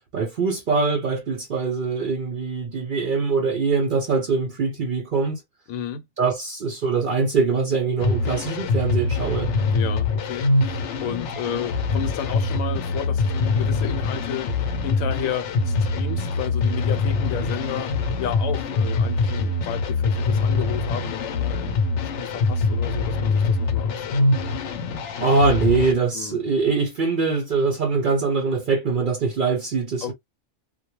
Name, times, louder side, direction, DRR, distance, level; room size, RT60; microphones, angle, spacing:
voice 1, 0.1-5.4 6.2-9.5 25.2-30.1, right 4 dB, 60° right, 0.5 m, -23 dB
voice 2, 5.7-6.0 9.7-21.8 22.2-24.3 26.1-26.4 30.0-30.1, left 8 dB, 90° left, 1.1 m, -32 dB
sound 1, 8.0-25.9, left 3 dB, 70° left, 0.8 m, -24 dB
2.3 x 2.2 x 2.9 m
omnidirectional pair, 1.4 m